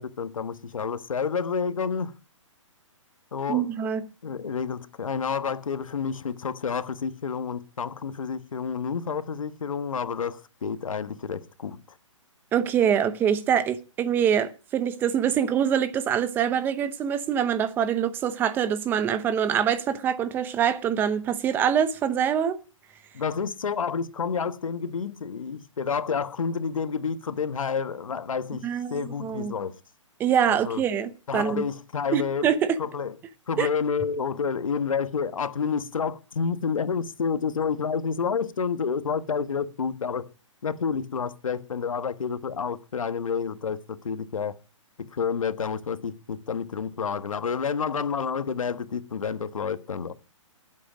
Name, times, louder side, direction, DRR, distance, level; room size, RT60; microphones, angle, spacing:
voice 1, 0.0-2.1 3.3-3.7 4.2-11.8 23.1-29.7 30.5-30.8 31.3-32.5 32.8-33.1 33.5-40.3 40.6-44.5 45.0-50.1, left 6 dB, 90° left, 1.5 m, -29 dB
voice 2, 3.5-4.0 12.5-22.6 28.6-29.5 30.2-31.7 32.1-32.8 33.6-33.7, right 8 dB, 10° right, 0.8 m, -24 dB
19.5 x 8.4 x 5.1 m
hypercardioid pair, 160°, 17 cm